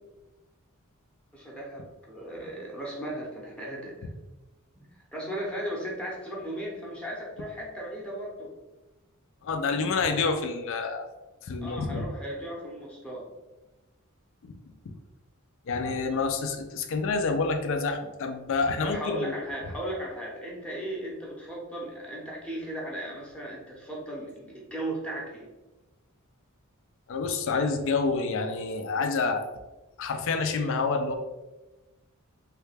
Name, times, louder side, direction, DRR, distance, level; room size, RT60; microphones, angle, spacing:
voice 1, 1.3-4.0 5.1-8.5 11.6-13.2 18.8-25.5, right 1 dB, 5° left, -4 dB, 0.7 m, -36 dB
voice 2, 9.4-11.1 11.4-12.1 14.4-14.6 14.9-15.0 15.7-19.3 27.1-29.5 30.0-31.1, left 4 dB, 65° left, 6 dB, 0.4 m, -28 dB
3.2 x 2.2 x 3.2 m, 1.1 s
head